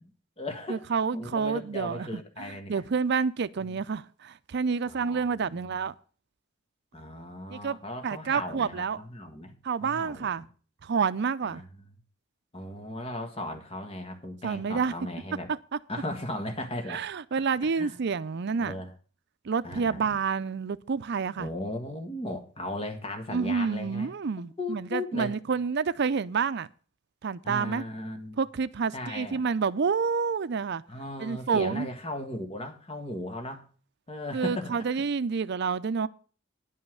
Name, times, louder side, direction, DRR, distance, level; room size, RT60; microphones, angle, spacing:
voice 1, 0.0-0.8 1.1-2.8 3.7-3.8 4.8-5.7 6.9-9.5 9.8-10.3 11.4-11.6 12.5-15.5 15.9-17.0 17.8-17.9 18.6-18.9 19.6-20.2 21.4-24.1 24.6-25.3 27.4-28.4 28.9-29.5 30.9-33.7 34.1-34.8, left 1 dB, 30° left, 1.7 m, -37 dB
voice 2, 0.7-5.9 7.5-7.8 8.0-9.0 9.6-10.4 10.8-11.6 14.4-14.9 15.5-15.6 16.9-18.8 19.4-21.5 23.3-26.7 27.2-27.8 28.4-30.8 31.2-31.9 34.3-36.1, right 5 dB, 60° right, 0.5 m, -29 dB
10.5 x 5.6 x 7.7 m
head